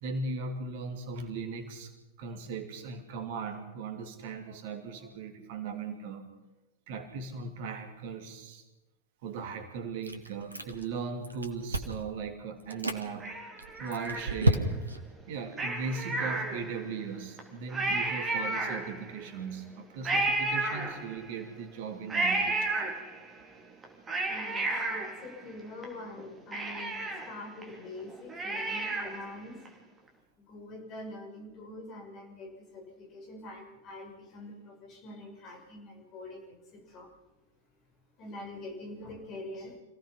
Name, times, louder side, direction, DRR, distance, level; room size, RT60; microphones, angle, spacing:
voice 1, 0.0-1.9 2.2-6.2 6.9-8.6 9.2-13.3 13.8-14.8 15.3-22.7, right 4 dB, 50° right, 6 dB, 2.7 m, -38 dB
Chewing mastication, 10.0-11.0 11.2-12.1 12.6-13.0 13.6-15.0, right 1 dB, 80° right, 1.7 m, -30 dB
Cat, 13.2-14.7 15.5-16.9 17.4-17.5 17.7-19.2 20.0-21.4 22.1-23.4 23.8-25.8 26.2-26.3 26.5-29.3 29.7-29.8, right 2 dB, 15° right, 3.7 m, -32 dB
voice 2, 24.3-29.6 30.4-37.1 38.2-39.7, left 2 dB, 35° left, 2 dB, 6.2 m, -45 dB
27.0 x 17.0 x 5.7 m, 1.0 s
figure-of-eight pair, 90°, 0 cm